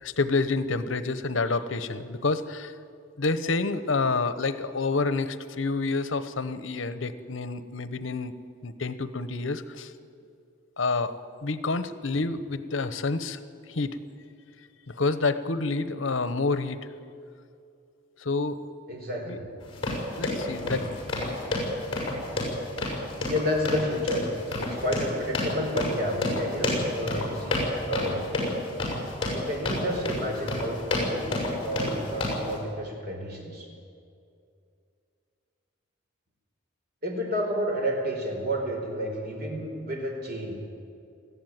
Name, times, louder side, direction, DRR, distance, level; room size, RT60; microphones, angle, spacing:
voice 1, 0.0-2.7 3.2-8.3 8.6-9.9 10.8-11.2 11.4-13.4 13.7-14.0 14.9-16.9 18.2-18.6 19.3-19.4 20.2-21.4, left 3 dB, 80° left, 13 dB, 1.0 m, -28 dB
voice 2, 18.9-19.5 20.6-20.8 23.2-28.2 29.2-33.7 37.0-40.6, equal, 50° right, 1 dB, 4.3 m, -31 dB
sound 1, 19.6-32.6, left 2 dB, 25° left, 5.7 m, -30 dB
19.5 x 14.5 x 9.2 m, 2.4 s
head